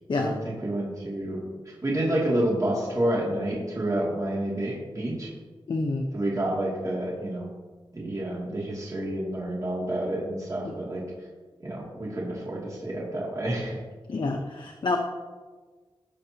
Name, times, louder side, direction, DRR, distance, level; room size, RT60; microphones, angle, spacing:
voice 1, 0.2-1.4 1.7-5.3 6.1-7.5 7.9-11.0 11.6-13.8, right 1 dB, 35° right, -5 dB, 2.6 m, -29 dB
voice 2, 5.7-6.1 10.6-10.7 14.1-15.0, left 3 dB, 60° left, 2 dB, 0.9 m, -28 dB
18.5 x 6.6 x 2.9 m, 1.4 s
wide cardioid pair, 100°, 9 cm